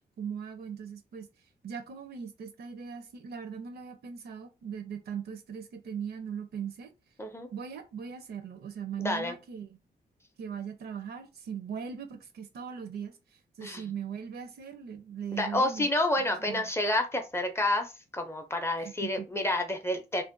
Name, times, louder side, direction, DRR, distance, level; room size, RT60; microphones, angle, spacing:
voice 1, 0.2-1.3 1.6-6.9 7.5-9.8 10.4-15.9 16.4-16.7 18.8-19.3, right 7 dB, 70° right, 0.6 m, -39 dB
voice 2, 9.0-9.3 13.6-13.8 15.3-20.2, left 1 dB, 15° left, 0.4 m, -29 dB
2.5 x 2.1 x 2.5 m
wide cardioid pair, 140°, 17 cm